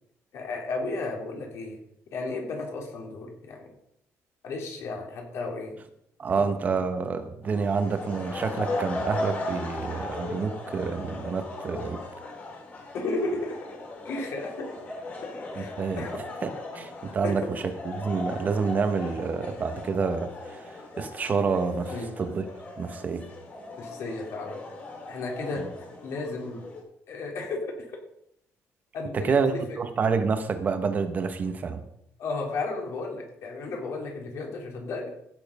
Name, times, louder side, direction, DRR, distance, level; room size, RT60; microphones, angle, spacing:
voice 1, 0.3-1.8 2.1-3.7 4.4-5.8 12.9-13.6 14.1-14.7 15.2-16.2 17.2-17.5 21.9-22.1 23.8-24.6 25.1-25.6 26.0-26.6 27.1-27.7 28.9-29.6 32.2-35.1, left 3 dB, 60° left, 1 dB, 3.5 m, -33 dB
voice 2, 6.2-12.0 15.6-16.1 16.4-16.5 16.7-20.6 21.0-22.4 22.8-23.2 25.6-25.7 29.1-31.8, right 5 dB, 30° right, 9 dB, 1.0 m, -28 dB
sound 1, 7.4-26.8, left 2 dB, 30° left, 3.4 m, -38 dB
15.5 x 7.5 x 5.3 m, 0.76 s
cardioid pair, 170°, 5 cm